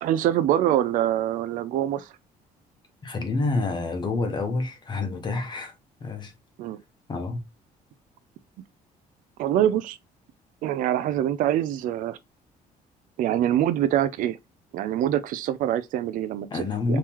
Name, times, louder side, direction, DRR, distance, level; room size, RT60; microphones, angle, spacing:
voice 1, 0.0-2.1 6.6-6.8 9.4-10.0 10.6-12.2 13.2-14.4 14.7-17.0, right 11 dB, 60° right, 0.4 m, -24 dB
voice 2, 3.0-5.7 6.0-6.3 7.1-7.4 16.5-17.0, left 3 dB, 30° left, 0.9 m, -28 dB
3.7 x 3.1 x 2.9 m
cardioid pair, 145°, 15 cm